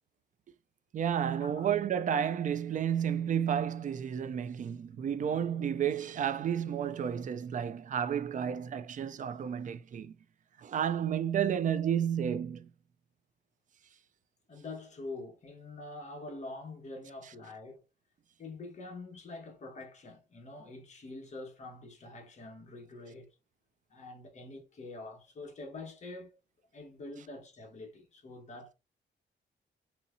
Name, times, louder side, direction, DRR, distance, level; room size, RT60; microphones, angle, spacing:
voice 1, 0.9-10.1 10.6-12.7, right 8 dB, 45° right, 0.4 m, -31 dB
voice 2, 14.5-17.8 18.4-23.3 23.9-26.4 26.7-28.7, left 2 dB, 40° left, 1.3 m, -45 dB
4.2 x 2.8 x 2.6 m
wide cardioid pair, 150°, 19 cm